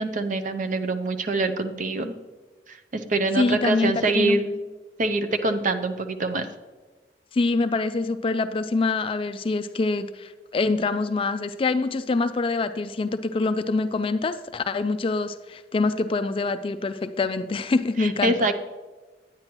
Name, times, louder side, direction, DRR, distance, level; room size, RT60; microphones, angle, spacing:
voice 1, 0.0-2.2 2.7-4.7 5.0-6.5 18.0-18.5, right 2 dB, 45° right, 7 dB, 0.6 m, -25 dB
voice 2, 3.4-4.4 7.3-18.3, left 3 dB, 30° left, 11 dB, 0.3 m, -25 dB
9.6 x 8.8 x 3.0 m, 1.2 s
head